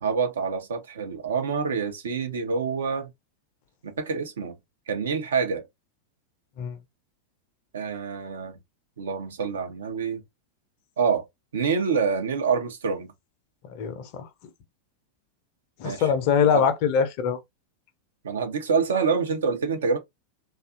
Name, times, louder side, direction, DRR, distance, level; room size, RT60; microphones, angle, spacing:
voice 1, 0.0-3.1 3.8-4.6 4.9-5.7 7.7-8.6 9.0-10.2 11.0-11.2 11.5-13.1 15.8-16.1 16.5-16.6 18.2-20.0, right 5 dB, 65° right, 0.7 m, -26 dB
voice 2, 13.6-14.3 15.8-17.4, left 7 dB, 45° left, 0.6 m, -23 dB
2.7 x 2.4 x 2.3 m
figure-of-eight pair, 90°, 0 cm